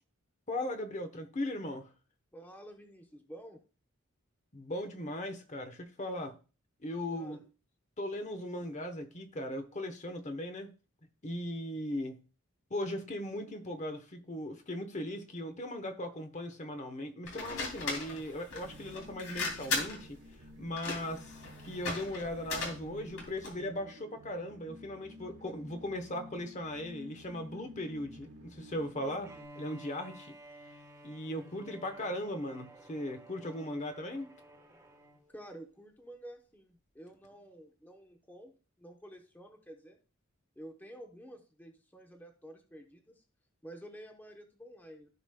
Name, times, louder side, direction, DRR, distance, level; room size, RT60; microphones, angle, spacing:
voice 1, 0.5-1.9 4.5-6.4 6.8-7.4 8.0-10.7 11.2-12.2 12.7-20.2 20.6-21.4 21.6-30.3 31.0-34.3, left 1 dB, 35° left, 1.0 m, -38 dB
voice 2, 2.3-3.6 7.1-7.4 35.3-38.5 38.8-40.0 40.6-43.2 43.6-45.1, right 1 dB, 10° left, 0.8 m, -50 dB
sound 1, 17.2-23.6, left 3 dB, 75° left, 2.7 m, -38 dB
sound 2, 18.6-29.5, left 1 dB, 65° right, 1.2 m, -52 dB
Bowed string instrument, 29.2-35.3, right 1 dB, 15° right, 1.2 m, -53 dB
15.0 x 5.0 x 2.2 m
head